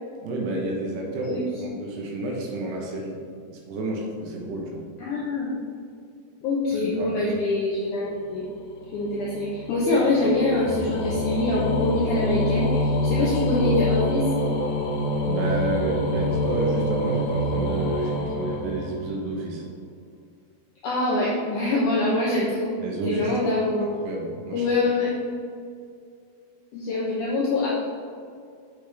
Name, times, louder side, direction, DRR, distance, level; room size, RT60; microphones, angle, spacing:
voice 1, 0.2-3.2 3.5-4.8 6.7-7.2 15.2-19.6 22.8-23.3 23.8-24.7, right 2 dB, 80° right, -1 dB, 3.2 m, -30 dB
voice 2, 5.0-5.5 6.4-8.5 8.9-14.2 20.8-22.7 23.1-24.1 24.5-25.1 26.7-27.7, left 2 dB, 90° left, -5 dB, 1.7 m, -24 dB
sound 1, 8.4-19.3, left 1 dB, 75° left, 2.3 m, -26 dB
7.7 x 6.7 x 3.4 m, 2.3 s
omnidirectional pair, 4.9 m